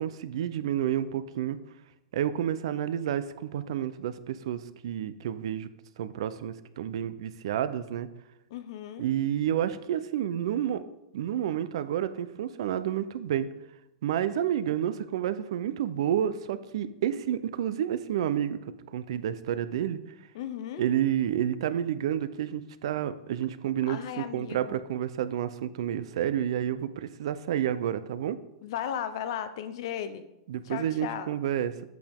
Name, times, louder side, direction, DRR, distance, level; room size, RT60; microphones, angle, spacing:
voice 1, 0.0-1.6 2.1-5.7 6.0-8.1 9.0-10.8 11.1-13.5 14.0-18.6 18.9-20.0 20.8-28.4 30.5-31.7, right 10 dB, 70° right, 13 dB, 0.5 m, -30 dB
voice 2, 8.5-9.1 20.3-20.8 23.9-24.8 28.6-30.2 30.6-31.3, left 9 dB, 60° left, 12 dB, 0.6 m, -36 dB
7.9 x 4.8 x 3.5 m, 0.92 s
supercardioid pair, 150°, 3 cm